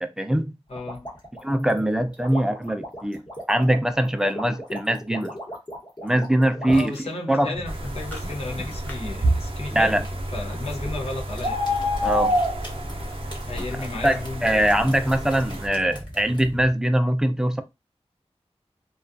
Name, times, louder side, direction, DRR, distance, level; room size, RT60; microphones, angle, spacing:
voice 1, 0.0-0.6 1.4-3.2 3.5-5.3 6.0-7.0 7.3-7.6 9.7-10.0 12.0-12.4 14.0-17.6, right 1 dB, 5° right, 0.3 m, -22 dB
voice 2, 0.7-1.1 6.7-10.0 10.3-11.6 13.5-14.8, left 2 dB, 65° left, 0.6 m, -33 dB
sound 1, 0.7-7.0 7.6-8.9 10.0-10.6 11.0-16.5, equal, 40° left, 1.0 m, -38 dB
sound 2, 7.5-16.7, equal, 15° left, 0.9 m, -37 dB
sound 3, 7.7-15.7, equal, 55° right, 0.6 m, -29 dB
2.3 x 2.3 x 2.5 m
wide cardioid pair, 65°, 11 cm